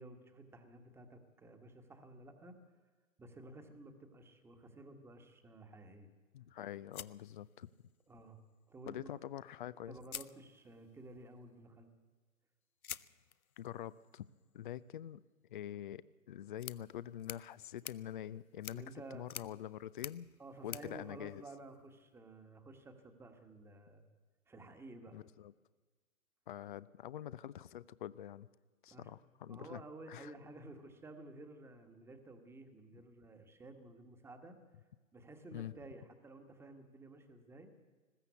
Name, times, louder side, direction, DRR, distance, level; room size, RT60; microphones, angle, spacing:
voice 1, 0.0-2.8 3.2-6.1 8.1-8.4 8.7-9.2 9.8-11.9 18.7-19.2 20.4-24.0 24.5-25.2 28.9-29.1 29.4-34.6 35.1-37.7, right 2 dB, 5° right, 7 dB, 1.4 m, -53 dB
voice 2, 6.3-7.7 8.9-9.9 13.6-14.3 14.5-15.2 15.5-18.8 19.1-20.3 20.6-21.4 25.1-25.5 26.5-28.5 28.8-29.8 30.1-30.3 35.5-35.7, left 11 dB, 35° left, 19 dB, 0.6 m, -45 dB
sound 1, 6.9-8.1 9.4-9.5 10.0-11.0 12.8-22.0, left 7 dB, 80° left, 0.8 m, -51 dB
20.5 x 15.5 x 8.2 m, 1.3 s
figure-of-eight pair, 125°, 42 cm